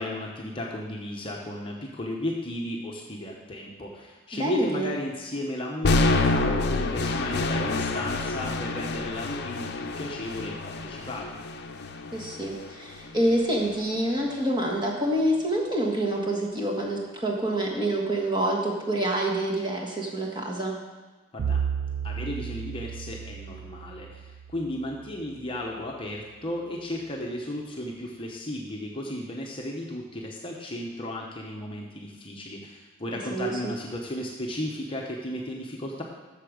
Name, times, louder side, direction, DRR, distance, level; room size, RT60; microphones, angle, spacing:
voice 1, 0.0-11.4 21.3-21.6 22.0-36.0, left 1 dB, 25° left, -1 dB, 0.9 m, -34 dB
voice 2, 4.3-4.9 12.1-20.7 33.3-33.7, right 1 dB, 20° right, -1 dB, 1.5 m, -27 dB
sound 1, 5.8-13.9, left 2 dB, 50° left, 0.6 m, -28 dB
Bowed string instrument, 21.4-25.6, right 7 dB, 70° right, 0.4 m, -33 dB
8.4 x 6.9 x 6.5 m, 1.3 s
head